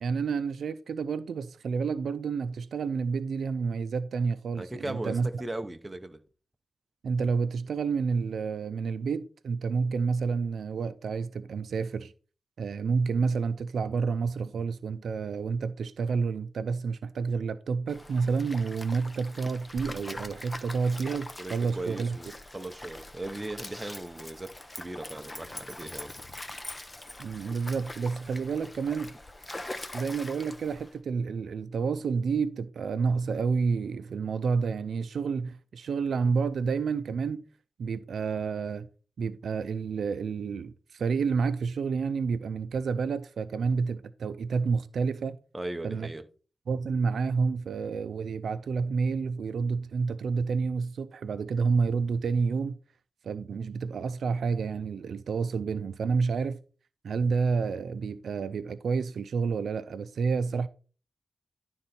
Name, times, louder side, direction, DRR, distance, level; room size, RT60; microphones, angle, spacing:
voice 1, 0.0-5.3 7.0-12.1 12.6-22.2 27.2-29.1 29.9-37.4 37.8-38.9 39.2-45.4 45.8-46.1 46.7-52.8 53.2-56.6 57.0-60.7, right 5 dB, 80° right, 0.5 m, -29 dB
voice 2, 4.5-6.2 21.4-26.1 45.5-46.2, right 1 dB, 15° right, 0.8 m, -38 dB
Stream, 17.9-31.0, left 1 dB, 20° left, 0.7 m, -43 dB
11.5 x 3.9 x 4.3 m
wide cardioid pair, 110°, 0 cm